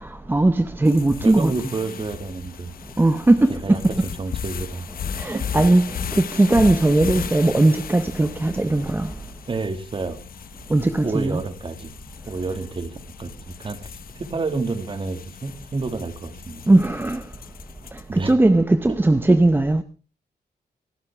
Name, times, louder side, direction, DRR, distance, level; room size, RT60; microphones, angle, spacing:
voice 1, 0.0-1.5 3.0-4.1 5.2-9.1 10.7-11.4 16.7-17.2 18.1-19.8, right 2 dB, 10° right, 0.7 m, -18 dB
sound 1, 0.9-18.2, left 8 dB, 60° left, 0.9 m, -36 dB
voice 2, 1.2-2.7 3.6-3.8 4.2-4.9 5.3-5.5 9.5-10.2 11.0-11.9 12.3-16.6 18.1-18.3 19.3-19.4, right 3 dB, 30° right, 2.0 m, -29 dB
25.0 x 13.0 x 3.5 m
wide cardioid pair, 155°, 17 cm